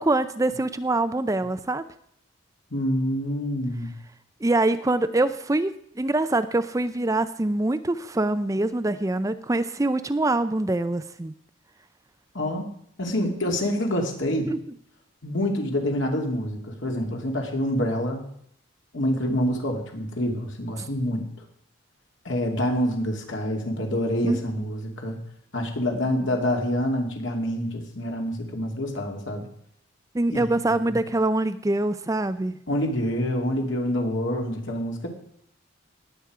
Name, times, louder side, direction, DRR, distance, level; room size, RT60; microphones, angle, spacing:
voice 1, 0.0-1.8 4.4-11.3 14.5-14.6 20.8-20.9 24.2-24.4 30.1-32.5, right 2 dB, 15° right, 11 dB, 0.4 m, -24 dB
voice 2, 2.7-3.9 12.3-12.7 13.0-14.5 15.2-18.2 18.9-21.2 22.2-25.2 25.5-29.4 30.3-31.0 32.7-35.1, equal, 65° left, 2 dB, 2.6 m, -27 dB
19.5 x 8.1 x 4.9 m, 0.69 s
head